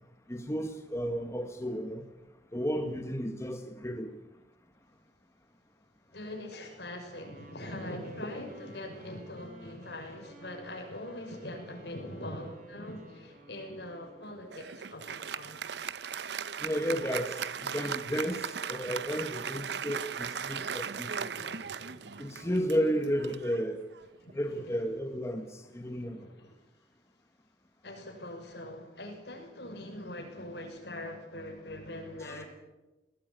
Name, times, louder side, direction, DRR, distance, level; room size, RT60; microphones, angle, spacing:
voice 1, 0.3-2.0 2.5-4.1 16.6-17.4 17.7-21.3 22.2-23.8 24.3-26.2 32.2-32.4, equal, 15° left, 6 dB, 1.3 m, -33 dB
voice 2, 6.1-15.6 20.4-20.5 21.4-22.5 24.2-24.7 25.4-25.5 25.8-26.6 27.8-32.4, left 1 dB, 65° left, 3 dB, 6.4 m, -43 dB
Wind instrument woodwind instrument, 7.1-14.6, equal, 50° right, 4.2 m, -53 dB
Applause, 14.5-24.3, right 7 dB, 70° right, 0.7 m, -38 dB
20.5 x 18.5 x 9.1 m, 1.1 s
head